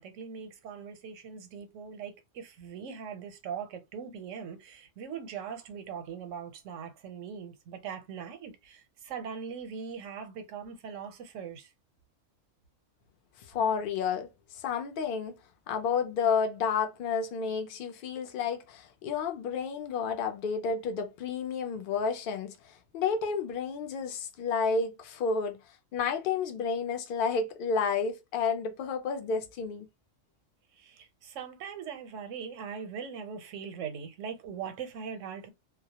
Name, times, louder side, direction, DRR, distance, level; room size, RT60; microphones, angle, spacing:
voice 1, 0.0-11.7 30.8-35.5, right 7 dB, 85° right, 1.0 m, -41 dB
voice 2, 13.5-15.3 15.7-22.6 22.9-25.6 25.9-29.9, left 5 dB, 60° left, 0.6 m, -31 dB
2.2 x 2.0 x 2.7 m
omnidirectional pair, 1.3 m